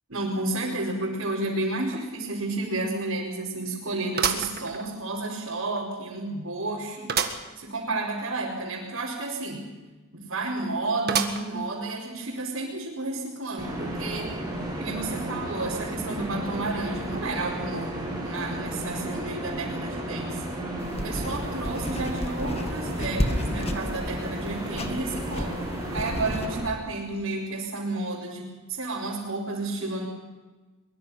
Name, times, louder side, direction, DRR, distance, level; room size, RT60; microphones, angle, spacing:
voice 1, 0.1-7.2 7.6-9.7 10.1-14.4 14.8-20.4 20.9-25.6 25.9-30.1, right 2 dB, 70° right, -6 dB, 4.9 m, -31 dB
sound 1, 1.9-2.0 2.5-2.6 4.2-5.3 5.8-5.9 7.1-7.5 7.9-8.0 8.2-8.3 11.1-11.7 12.3-12.4 13.4-13.5, right 7 dB, 45° right, 1.7 m, -29 dB
sound 2, 13.6-26.6, right 1 dB, 20° right, 7.6 m, -33 dB
sound 3, 20.8-26.5, left 1 dB, 30° left, 1.9 m, -33 dB
23.5 x 22.0 x 5.8 m, 1.3 s
head